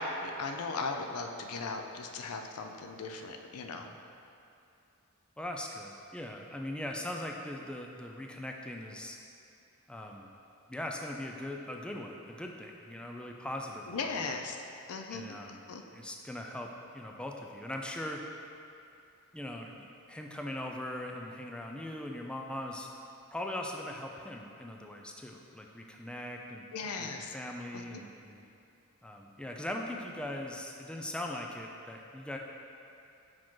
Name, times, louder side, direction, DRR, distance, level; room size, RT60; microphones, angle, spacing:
voice 1, 0.0-3.9 13.9-14.6 14.9-15.8 26.7-27.3 27.7-28.0, left 3 dB, 85° left, 4 dB, 0.5 m, -38 dB
voice 2, 5.4-9.2 9.9-10.3 10.7-14.3 15.1-15.6 15.9-18.2 19.3-22.9 23.3-28.4 29.0-32.4, left 1 dB, 5° left, 1 dB, 0.3 m, -40 dB
6.0 x 4.9 x 3.7 m, 2.6 s
head